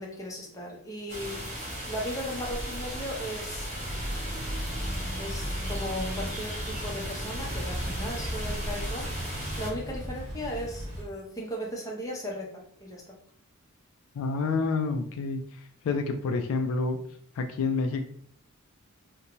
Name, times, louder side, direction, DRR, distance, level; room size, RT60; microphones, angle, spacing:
voice 1, 0.0-1.5 1.9-3.7 5.2-9.3 9.6-12.5 12.8-13.1, equal, 15° left, -3 dB, 0.6 m, -36 dB
sound 1, 1.1-9.7, equal, 30° right, 0.7 m, -36 dB
sound 2, 3.5-11.0, equal, 50° right, 1.0 m, -37 dB
voice 2, 14.2-15.4 15.8-17.0 17.4-18.0, left 4 dB, 70° left, 6 dB, 0.3 m, -28 dB
2.6 x 2.1 x 2.9 m, 0.62 s
head